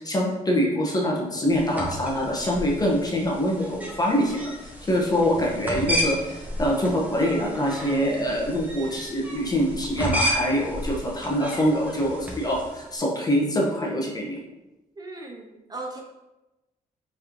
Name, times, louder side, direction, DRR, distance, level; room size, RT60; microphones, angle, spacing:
voice 1, 0.0-14.4, equal, 25° left, -2 dB, 1.2 m, -24 dB
sound 1, 1.5-12.8, equal, 10° right, 1.2 m, -33 dB
voice 2, 15.0-16.0, right 2 dB, 25° right, 1 dB, 0.6 m, -37 dB
4.7 x 3.5 x 3.0 m, 1.0 s
cardioid pair, 80°, 16 cm